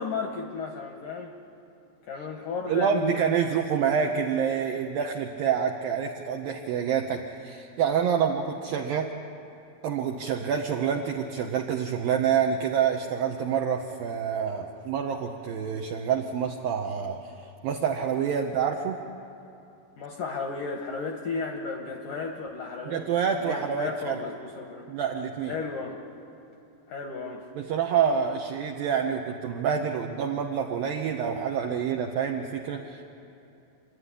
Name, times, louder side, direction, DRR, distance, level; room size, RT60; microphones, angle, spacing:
voice 1, 0.0-1.3 2.0-3.4 20.0-23.0 23.4-24.9 25.5-26.0 26.9-27.5, left 4 dB, 70° left, 2 dB, 2.0 m, -34 dB
voice 2, 2.7-9.1 9.8-19.0 22.9-24.2 24.9-25.6 27.6-33.0, right 7 dB, 80° right, 2 dB, 2.1 m, -27 dB
27.5 x 11.5 x 9.7 m, 2.8 s
omnidirectional pair, 5.3 m